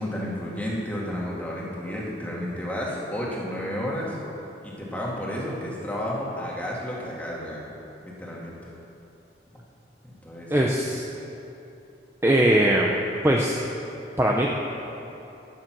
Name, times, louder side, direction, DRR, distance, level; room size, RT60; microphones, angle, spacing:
voice 1, 0.0-4.2 4.6-7.7 8.0-8.5 10.2-10.9, equal, 10° left, -5 dB, 2.1 m, -32 dB
voice 2, 10.5-11.0 12.2-13.6 14.2-14.5, right 1 dB, 15° right, -1 dB, 0.6 m, -21 dB
12.5 x 10.5 x 6.1 m, 3.0 s
head